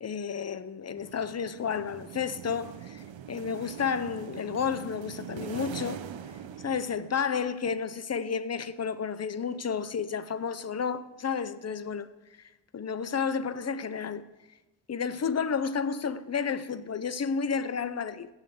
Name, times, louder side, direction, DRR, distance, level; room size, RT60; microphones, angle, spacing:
voice 1, 0.0-6.0 6.6-12.1 12.7-14.2 14.9-18.3, left 6 dB, 35° left, 0.6 m, -31 dB
sound 1, 1.0-7.5, right 9 dB, 80° right, 0.7 m, -43 dB
16.0 x 5.7 x 7.7 m
wide cardioid pair, 135°, 44 cm